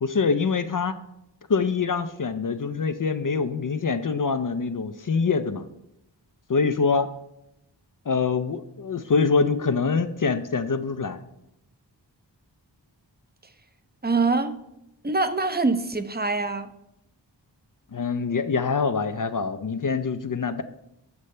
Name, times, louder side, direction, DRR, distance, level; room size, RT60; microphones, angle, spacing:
voice 1, 0.0-1.0 1.5-5.7 6.5-7.1 8.1-11.2 17.9-20.6, left 5 dB, 50° left, 10 dB, 0.5 m, -24 dB
voice 2, 14.0-14.6 15.0-16.7, right 3 dB, 20° right, 10 dB, 0.6 m, -24 dB
8.2 x 6.5 x 3.2 m, 0.83 s
wide cardioid pair, 50°, 44 cm